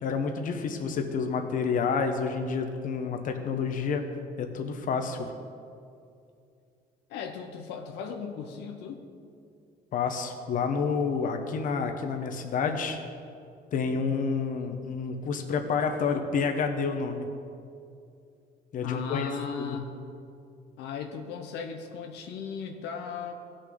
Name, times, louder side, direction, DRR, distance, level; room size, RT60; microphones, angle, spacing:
voice 1, 0.0-4.0 4.4-5.3 9.9-13.0 13.7-17.3 18.7-19.3 19.6-19.8, left 5 dB, 50° left, 5 dB, 1.1 m, -29 dB
voice 2, 7.1-9.0 13.9-14.2 18.8-19.9 20.8-23.3, left 6 dB, 85° left, 4 dB, 0.9 m, -37 dB
16.5 x 6.4 x 3.8 m, 2.5 s
cardioid pair, 110°, 17 cm